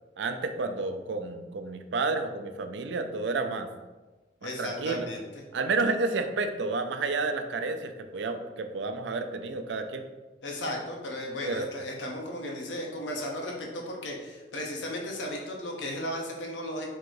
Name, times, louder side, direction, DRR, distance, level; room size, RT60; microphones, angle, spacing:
voice 1, 0.2-3.7 4.4-5.1 5.5-10.0 11.5-11.7, right 3 dB, 80° right, 7 dB, 0.4 m, -30 dB
voice 2, 4.4-5.4 10.4-16.9, left 1 dB, 85° left, 0 dB, 0.7 m, -35 dB
3.7 x 2.6 x 4.6 m, 1.2 s
head